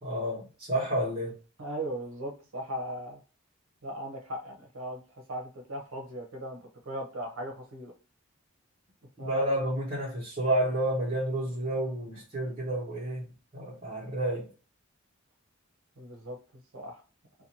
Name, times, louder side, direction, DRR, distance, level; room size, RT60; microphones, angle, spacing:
voice 1, 0.0-1.3 9.2-14.5, right 1 dB, 30° right, 1.0 m, -30 dB
voice 2, 1.6-3.2 3.8-7.9 9.2-9.4 16.0-16.4 16.7-17.0, right 1 dB, 80° right, 0.8 m, -38 dB
2.6 x 2.2 x 2.8 m
head